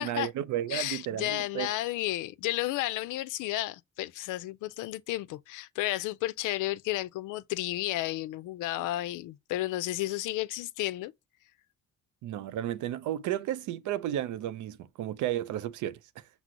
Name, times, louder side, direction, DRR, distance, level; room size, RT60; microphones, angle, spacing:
voice 1, 0.0-1.7 12.2-16.3, right 12 dB, 80° right, 0.5 m, -33 dB
voice 2, 0.7-11.1, left 16 dB, 85° left, 0.5 m, -32 dB
6.0 x 2.0 x 3.7 m
cardioid pair, 90°, 30 cm